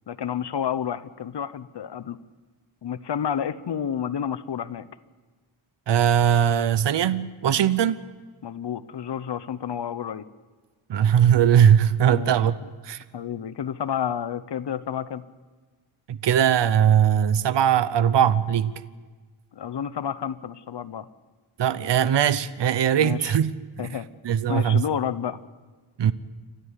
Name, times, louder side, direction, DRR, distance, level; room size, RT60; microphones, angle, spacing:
voice 1, 0.1-2.2 2.8-4.9 8.4-10.2 12.1-12.3 13.1-15.2 19.5-21.1 23.0-23.4 23.8-24.1 24.5-25.4, left 8 dB, 60° left, 0.9 m, -30 dB
voice 2, 5.9-8.0 10.9-12.6 12.8-13.0 16.1-18.8 21.6-23.5 23.8-23.9 24.2-24.8 26.0-26.1, right 9 dB, 60° right, 0.8 m, -20 dB
29.0 x 13.0 x 8.2 m
wide cardioid pair, 155°, 47 cm